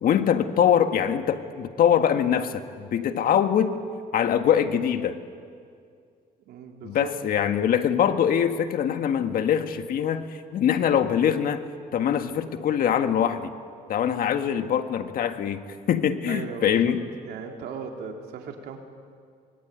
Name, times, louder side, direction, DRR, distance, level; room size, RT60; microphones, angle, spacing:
voice 1, 0.0-3.8 4.1-5.2 6.8-10.3 10.5-11.6 11.9-13.5 13.9-17.0, left 9 dB, 60° left, 8 dB, 1.7 m, -23 dB
voice 2, 6.5-7.1 16.3-16.9 17.2-18.8, right 6 dB, 75° right, 2 dB, 3.7 m, -37 dB
25.0 x 23.0 x 9.2 m, 2.3 s
cardioid pair, 110°, 17 cm